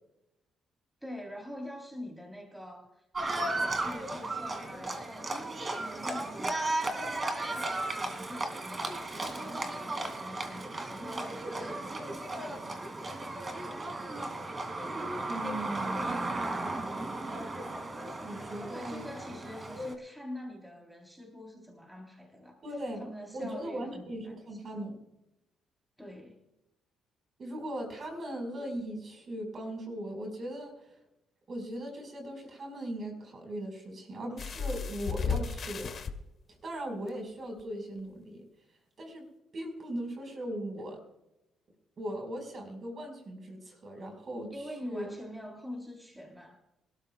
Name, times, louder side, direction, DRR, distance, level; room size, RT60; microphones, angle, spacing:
voice 1, 1.0-3.0 3.4-7.1 7.4-12.9 18.6-22.6 23.0-24.4 26.0-26.5 44.5-46.6, left 1 dB, 5° right, 1 dB, 3.6 m, -45 dB
Livestock farm animals working animals, 3.1-19.9, right 2 dB, 30° right, 2.4 m, -35 dB
voice 2, 15.3-16.6 18.2-19.1 22.6-23.0 23.3-25.0 27.4-31.0 31.5-35.9 36.6-38.4 39.0-39.3 39.5-41.0 42.0-45.1, right 1 dB, 45° right, 3 dB, 5.0 m, -39 dB
sound 1, 34.4-36.1 37.1-37.2 37.6-37.7, left 5 dB, 50° left, 1.3 m, -34 dB
25.0 x 13.0 x 2.4 m, 0.89 s
cardioid pair, 90°, 0 cm